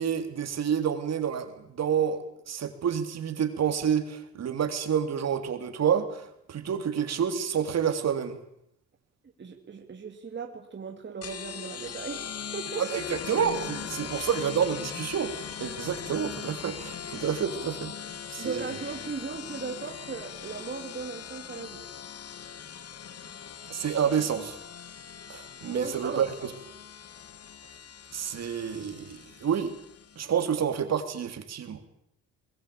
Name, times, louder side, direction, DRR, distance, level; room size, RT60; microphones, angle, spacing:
voice 1, 0.0-8.4 12.8-17.9 18.3-18.7 23.7-24.6 25.3-26.2 28.1-29.7 30.2-31.8, right 8 dB, 60° right, 7 dB, 3.6 m, -29 dB
voice 2, 9.4-12.9 13.3-13.4 14.0-14.1 18.4-21.8 25.6-26.5, right 5 dB, 35° right, 3 dB, 2.6 m, -37 dB
sound 1, 11.2-30.4, left 8 dB, 55° left, 2.0 m, -40 dB
22.0 x 21.5 x 8.7 m, 0.76 s
cardioid pair, 90°, 30 cm